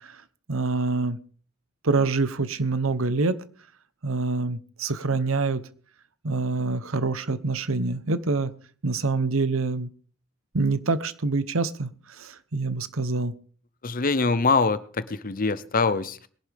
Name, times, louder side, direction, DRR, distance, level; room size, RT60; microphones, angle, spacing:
voice 1, 0.5-1.2 1.8-3.4 4.0-5.6 6.2-8.5 8.8-9.9 10.5-11.9 12.2-13.3, right 3 dB, 70° right, 14 dB, 1.0 m, -25 dB
voice 2, 13.8-16.3, left 4 dB, 40° left, 14 dB, 0.8 m, -24 dB
21.5 x 11.5 x 3.5 m, 0.43 s
head